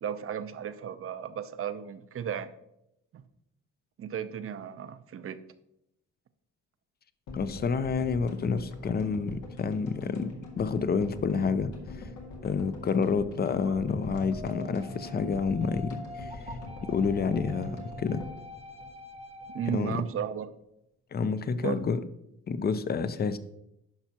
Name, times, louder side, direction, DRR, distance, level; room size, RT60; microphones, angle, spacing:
voice 1, 0.0-2.5 3.1-3.2 4.0-5.4 19.5-20.5 21.6-21.8, right 8 dB, 45° right, 12 dB, 0.6 m, -34 dB
sound 1, 7.3-19.5 19.7-19.8 20.0-20.1, left 2 dB, 85° left, 1.8 m, -43 dB
voice 2, 7.3-11.7 12.0-12.1 12.4-16.4 16.8-18.2 19.7-20.0 21.1-22.0 22.5-23.4, left 5 dB, 30° left, 13 dB, 0.6 m, -29 dB
sound 2, 13.7-19.7, equal, 20° right, 1.0 m, -45 dB
10.5 x 5.7 x 2.9 m, 0.81 s
cardioid pair, 90°, 30 cm